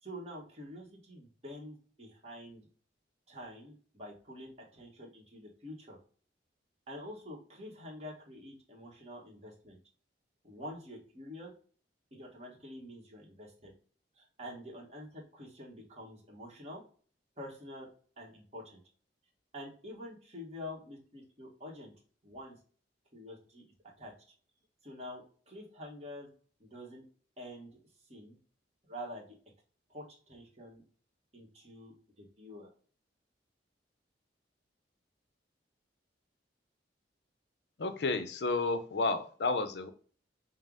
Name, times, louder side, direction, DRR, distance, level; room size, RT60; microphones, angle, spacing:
voice 1, 0.0-2.6 3.3-6.0 6.9-9.8 10.4-11.5 12.1-13.7 14.2-16.8 17.4-17.9 18.2-18.8 19.5-21.9 22.2-22.6 23.1-23.6 24.0-24.1 24.8-26.3 26.6-27.0 27.4-27.7 28.1-28.4 28.9-29.3 29.9-30.8 31.3-32.7, left 1 dB, 35° right, -1 dB, 1.2 m, -47 dB
voice 2, 37.8-39.9, left 3 dB, 70° left, 9 dB, 0.5 m, -31 dB
5.3 x 2.0 x 3.5 m, 0.43 s
head